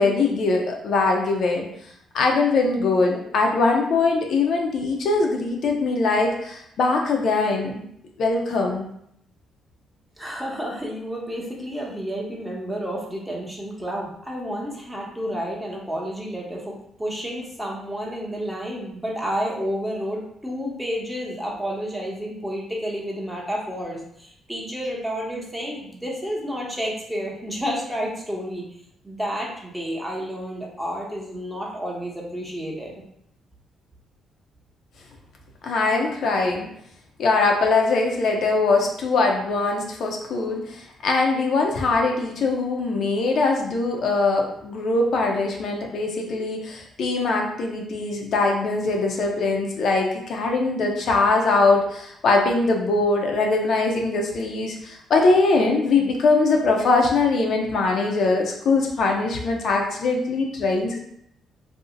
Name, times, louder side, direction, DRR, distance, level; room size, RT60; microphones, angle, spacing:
voice 1, 0.0-1.7 2.1-7.8 8.2-8.8 35.6-36.7 37.2-61.0, left 3 dB, 65° left, 1 dB, 0.5 m, -22 dB
voice 2, 10.2-28.6 29.0-32.9, equal, 5° right, -3 dB, 0.8 m, -30 dB
2.6 x 2.0 x 3.7 m, 0.71 s
cardioid pair, 90°, 0 cm